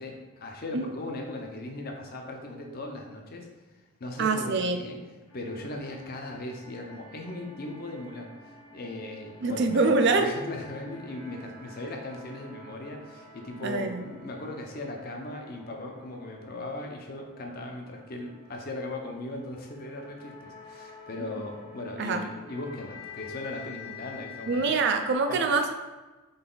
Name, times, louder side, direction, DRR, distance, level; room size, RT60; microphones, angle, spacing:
voice 1, 0.0-3.5 4.0-5.0 5.3-9.9 10.2-24.8 25.3-25.5, left 2 dB, 45° left, 2 dB, 0.6 m, -38 dB
voice 2, 4.2-4.8 9.4-10.4 13.6-14.0 22.0-22.2 24.5-25.7, right 3 dB, 55° right, 6 dB, 0.4 m, -25 dB
sound 1, 5.3-25.1, left 5 dB, 85° left, 1.4 m, -49 dB
4.0 x 3.3 x 3.8 m, 1.2 s
head